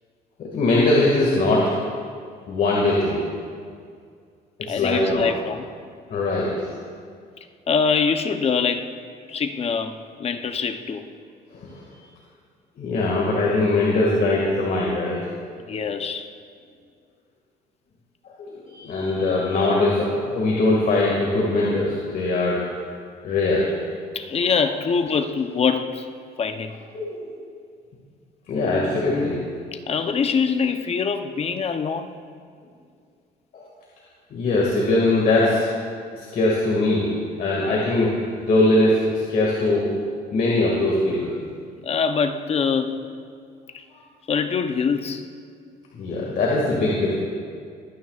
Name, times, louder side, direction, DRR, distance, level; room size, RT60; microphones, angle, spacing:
voice 1, 0.4-1.8 2.5-3.2 4.7-5.3 6.1-6.5 11.5-11.8 12.8-15.2 18.4-22.6 23.2-23.7 26.9-27.3 28.5-29.4 33.5-33.6 34.3-35.7 36.1-37.1 37.4-39.9 40.3-41.4 45.9-47.1, left 2 dB, 55° left, -4 dB, 2.0 m, -21 dB
voice 2, 4.6-5.7 7.7-8.9 9.3-11.0 15.7-16.3 24.1-26.1 26.4-26.7 29.9-32.2 41.8-43.1 43.7-43.8 44.3-45.2, left 5 dB, 35° left, 8 dB, 0.8 m, -24 dB
22.0 x 9.3 x 2.4 m, 2.2 s
cardioid pair, 110°, 17 cm